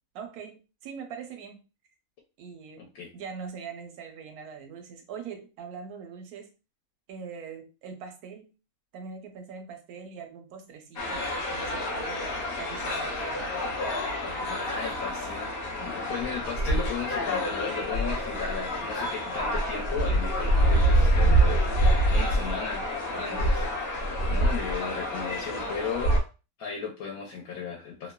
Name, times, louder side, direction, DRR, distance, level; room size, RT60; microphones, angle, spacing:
voice 1, 0.1-1.6 2.4-2.9 3.1-6.5 7.1-8.5 8.9-13.6 14.3-14.9 15.8-16.0 19.2-19.5 23.2-23.4, right 6 dB, 85° right, 5 dB, 1.1 m, -42 dB
voice 2, 2.8-3.1 14.1-14.3 14.6-15.5 15.8-23.7 24.2-26.2 26.6-28.1, left 5 dB, 80° left, -2 dB, 1.1 m, -36 dB
sound 1, 11.0-26.2, right 1 dB, 60° left, 0.6 m, -26 dB
2.8 x 2.1 x 2.2 m, 0.31 s
omnidirectional pair, 1.5 m